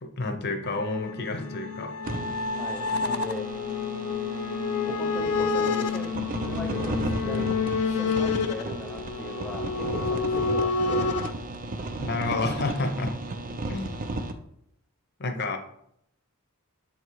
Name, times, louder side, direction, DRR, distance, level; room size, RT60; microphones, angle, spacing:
voice 1, 0.0-1.9 12.0-13.1 13.7-13.9 15.2-15.6, left 2 dB, 50° left, 6 dB, 0.8 m, -29 dB
sound 1, 0.6-11.3, left 4 dB, 75° left, 0.4 m, -29 dB
sound 2, 2.0-14.3, right 2 dB, 40° right, 0.5 m, -35 dB
voice 2, 2.5-3.5 4.8-6.1 6.5-7.5 7.9-11.1, left 1 dB, 5° left, 2 dB, 0.7 m, -38 dB
7.6 x 2.9 x 4.6 m, 0.73 s
head